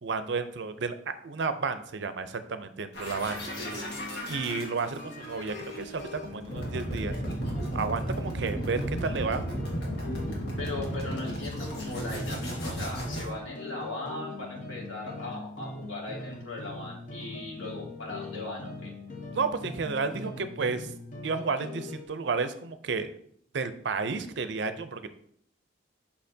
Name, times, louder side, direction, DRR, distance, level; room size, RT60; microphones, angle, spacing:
voice 1, 0.0-3.4 4.3-7.1 7.7-9.5 19.3-20.9 21.2-23.1 23.5-25.1, right 4 dB, 65° right, 10 dB, 0.5 m, -32 dB
sound 1, 2.9-13.3, equal, 60° left, 1.6 m, -34 dB
sound 2, 3.3-22.1, left 2 dB, 40° left, 0.8 m, -41 dB
voice 2, 3.6-4.0 10.6-18.9, left 2 dB, 90° left, -2 dB, 2.0 m, -38 dB
6.5 x 5.7 x 2.7 m, 0.65 s
head